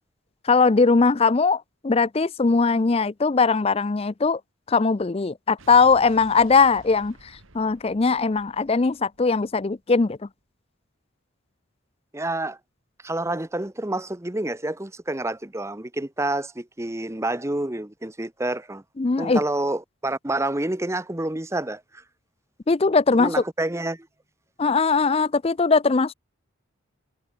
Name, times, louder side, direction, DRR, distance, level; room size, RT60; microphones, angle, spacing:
voice 1, 0.5-4.4 4.7-7.1 7.5-10.2 19.0-19.4 22.7-23.3 24.6-26.1, left 4 dB, 25° left, 0.4 m, -20 dB
Explosion, 5.6-9.9, right 2 dB, 65° right, 3.0 m, -51 dB
voice 2, 12.1-12.6 13.0-18.8 19.2-22.0 23.1-24.1, right 2 dB, 15° right, 0.8 m, -28 dB
head